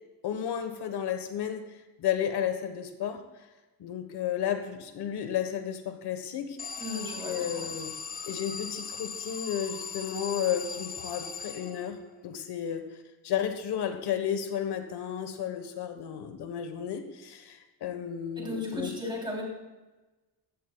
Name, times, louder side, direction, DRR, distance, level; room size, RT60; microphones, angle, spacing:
voice 1, 0.2-1.6 2.0-3.2 3.8-6.6 7.2-7.9 8.3-12.0 12.2-12.9 13.2-18.9, left 9 dB, 85° left, 7 dB, 1.2 m, -32 dB
Alarm, 6.6-12.1, left 5 dB, 25° left, 0.5 m, -39 dB
voice 2, 6.8-7.7 18.4-19.4, left 1 dB, 10° right, -3 dB, 3.2 m, -35 dB
15.0 x 13.5 x 2.3 m, 1.1 s
wide cardioid pair, 180°, 39 cm